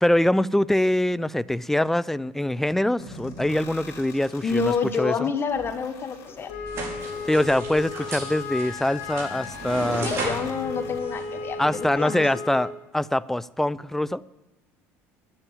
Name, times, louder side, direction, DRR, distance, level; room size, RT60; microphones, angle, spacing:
voice 1, 0.0-5.3 7.3-10.1 11.6-14.2, left 1 dB, 5° left, 0.4 m, -24 dB
sound 1, 3.0-11.0, left 2 dB, 55° left, 2.9 m, -44 dB
voice 2, 4.4-6.5 10.0-12.2, left 5 dB, 40° left, 1.4 m, -28 dB
Wind instrument woodwind instrument, 6.5-12.8, left 5 dB, 80° left, 1.9 m, -35 dB
sound 2, 6.7-11.9, right 3 dB, 45° right, 5.2 m, -36 dB
10.5 x 9.9 x 9.0 m
supercardioid pair, 95°, 6 cm